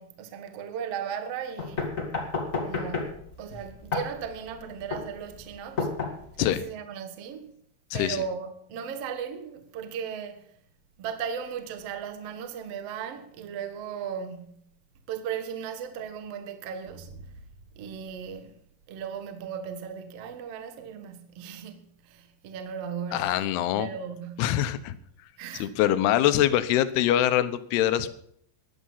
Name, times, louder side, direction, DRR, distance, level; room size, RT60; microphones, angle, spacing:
voice 1, 0.0-1.9 2.6-5.9 6.4-7.5 7.9-10.4 11.0-14.6 15.1-17.3 17.8-18.5 18.9-23.5 23.8-24.5 25.4-25.7, right 7 dB, 80° right, 1.4 m, -37 dB
sound 1, 1.6-6.6, left 4 dB, 50° left, 0.9 m, -32 dB
voice 2, 7.9-8.2 23.1-23.9 24.4-24.9 25.5-28.1, left 12 dB, 75° left, 2.6 m, -24 dB
15.5 x 11.0 x 5.6 m
omnidirectional pair, 5.3 m